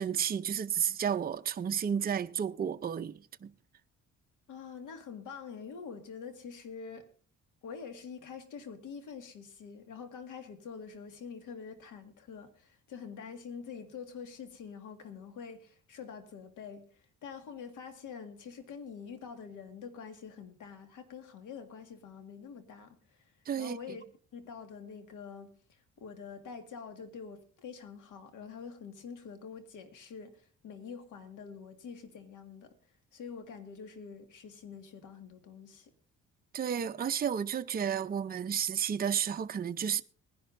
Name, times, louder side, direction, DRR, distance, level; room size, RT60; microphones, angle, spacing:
voice 1, 0.0-3.5 23.5-23.8 36.5-40.0, right 8 dB, 30° right, 0.6 m, -32 dB
voice 2, 4.5-7.1 7.6-24.0 24.3-32.8 33.1-35.9, left 6 dB, 85° left, 2.0 m, -46 dB
21.5 x 11.0 x 2.6 m
cardioid pair, 90°, 30 cm